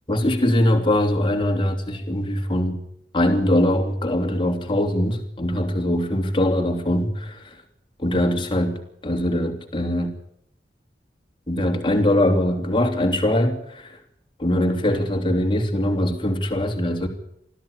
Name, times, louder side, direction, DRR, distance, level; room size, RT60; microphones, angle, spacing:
voice 1, 0.1-2.8 3.1-7.5 8.0-10.1 11.5-14.0 14.4-17.1, left 1 dB, 30° left, 3 dB, 3.0 m, -22 dB
21.5 x 14.0 x 8.9 m, 0.74 s
head